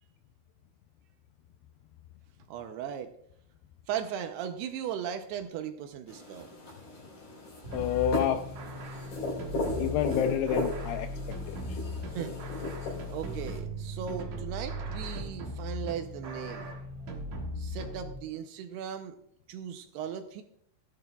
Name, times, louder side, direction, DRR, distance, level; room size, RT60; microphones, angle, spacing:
voice 1, 2.5-3.1 3.9-6.5 12.1-12.5 13.1-16.8 17.6-19.2 19.5-20.4, right 9 dB, 80° right, 6 dB, 2.5 m, -37 dB
sound 1, 6.1-13.6, left 2 dB, 55° left, 5.1 m, -37 dB
sound 2, 7.6-18.1, equal, 60° right, 2.1 m, -38 dB
voice 2, 7.7-8.5 9.8-11.8, left 10 dB, 85° left, 7 dB, 2.3 m, -29 dB
17.0 x 12.0 x 2.3 m, 0.67 s
omnidirectional pair, 5.2 m